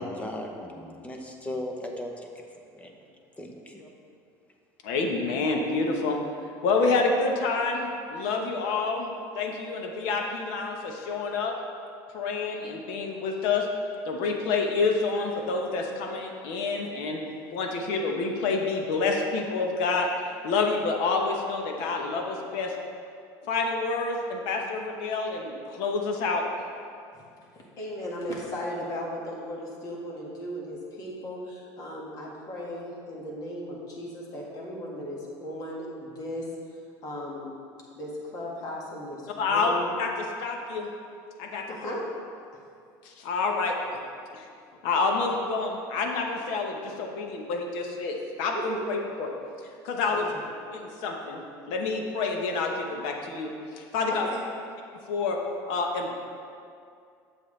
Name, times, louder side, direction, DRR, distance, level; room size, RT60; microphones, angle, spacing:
voice 1, 0.0-2.4 2.7-2.9 3.4-3.9, left 1 dB, 15° left, 2 dB, 0.8 m, -37 dB
voice 2, 4.8-6.2 6.6-11.5 12.1-13.7 14.1-17.2 17.5-22.7 23.5-26.4 39.4-40.9 41.4-41.7 43.0-43.8 44.3-44.5 44.8-49.3 49.8-50.2 50.7-54.3 55.1-55.4 55.7-56.2, left 4 dB, 75° left, 2 dB, 1.0 m, -28 dB
voice 3, 27.1-36.5 37.0-37.5 37.9-39.9 41.7-42.1 48.5-48.8 50.1-50.4 54.1-54.4, equal, 45° left, -2 dB, 1.8 m, -37 dB
8.0 x 7.1 x 3.3 m, 2.4 s
cardioid pair, 125°, 8 cm